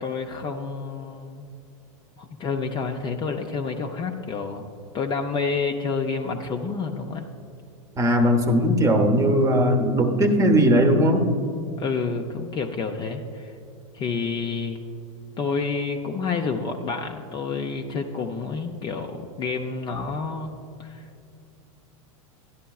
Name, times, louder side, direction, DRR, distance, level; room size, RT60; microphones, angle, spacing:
voice 1, 0.0-1.5 2.2-4.7 4.9-7.3 11.8-13.5 13.9-14.8 15.4-21.0, left 4 dB, 25° left, 4 dB, 0.5 m, -29 dB
voice 2, 8.0-11.3, equal, 20° right, 5 dB, 0.8 m, -19 dB
12.5 x 10.5 x 2.3 m, 2.6 s
hypercardioid pair, 125°, 18 cm